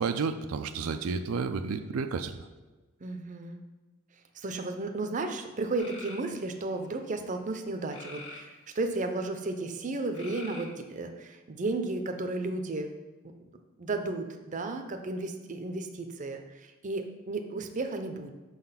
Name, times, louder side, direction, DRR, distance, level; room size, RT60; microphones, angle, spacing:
voice 1, 0.0-2.5, right 5 dB, 85° right, 8 dB, 0.4 m, -31 dB
voice 2, 3.0-3.6 4.3-12.9 13.4-13.5 13.8-18.3, right 2 dB, 35° right, 6 dB, 0.6 m, -34 dB
sound 1, 5.8-6.2 7.9-9.0 10.1-11.0, left 2 dB, 60° left, 1.4 m, -45 dB
5.8 x 4.0 x 5.6 m, 1.2 s
head